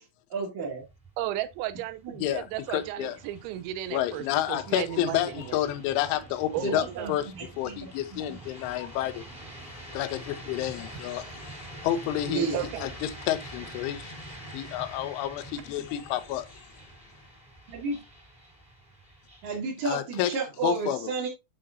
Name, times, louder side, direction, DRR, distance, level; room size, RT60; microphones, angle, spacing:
voice 1, 0.3-0.8 2.0-2.1 6.6-7.9 8.3-8.4 12.3-12.7 17.7-18.0 19.4-21.3, right 4 dB, 50° right, 2.7 m, -32 dB
sound 1, 0.6-19.6, right 1 dB, ahead, 1.7 m, -46 dB
voice 2, 1.2-5.6 6.5-7.1 12.5-12.9, right 13 dB, 80° right, 2.8 m, -34 dB
voice 3, 2.7-3.2 3.9-7.3 7.6-9.2 9.9-11.6 11.8-14.1 14.5-16.5 19.9-20.3 20.6-21.1, left 12 dB, 80° left, 3.1 m, -30 dB
8.8 x 5.9 x 2.6 m
omnidirectional pair, 5.7 m